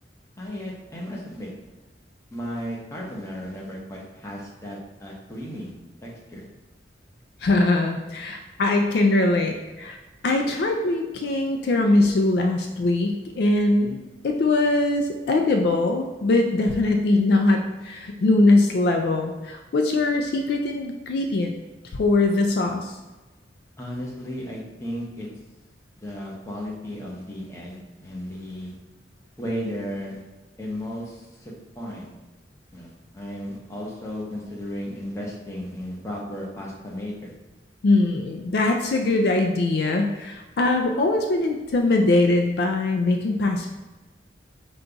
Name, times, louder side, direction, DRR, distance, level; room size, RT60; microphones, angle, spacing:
voice 1, 0.4-1.5 2.3-5.7 6.0-6.4 23.8-25.3 26.0-28.7 29.4-30.2 30.6-32.1 32.7-37.3, equal, 15° left, -3 dB, 0.8 m, -34 dB
voice 2, 7.4-10.0 10.2-21.5 21.9-22.9 37.8-43.7, left 2 dB, 60° left, 4 dB, 0.3 m, -22 dB
5.2 x 2.3 x 3.9 m, 1.1 s
head